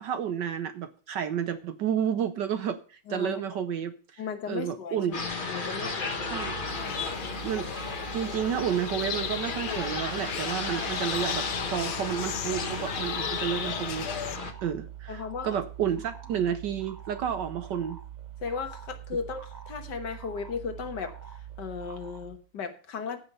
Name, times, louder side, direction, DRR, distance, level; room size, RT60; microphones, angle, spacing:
voice 1, 0.0-5.3 6.3-6.5 7.4-7.7 8.1-14.1 14.6-18.0, right 8 dB, 65° right, 1.2 m, -31 dB
voice 2, 4.2-5.0 5.5-6.5 6.8-7.4 15.1-15.5 18.4-23.2, left 5 dB, 55° left, 1.7 m, -36 dB
sound 1, 5.1-14.5, left 4 dB, 30° left, 1.0 m, -34 dB
sound 2, 6.2-22.4, right 11 dB, 40° right, 0.6 m, -44 dB
sound 3, 6.7-14.4, left 12 dB, 80° left, 1.5 m, -37 dB
14.5 x 5.5 x 5.4 m
omnidirectional pair, 2.4 m